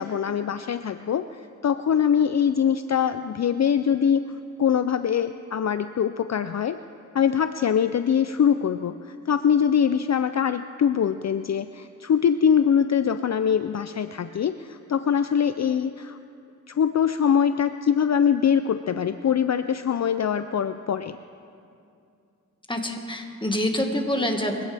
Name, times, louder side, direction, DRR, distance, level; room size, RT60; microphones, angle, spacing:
voice 1, 0.0-6.8 7.1-16.2 16.7-21.2, left 8 dB, 60° left, 10 dB, 0.4 m, -23 dB
voice 2, 22.7-24.6, left 1 dB, 15° left, 3 dB, 1.7 m, -26 dB
22.5 x 16.5 x 3.4 m, 2.5 s
wide cardioid pair, 70°, 31 cm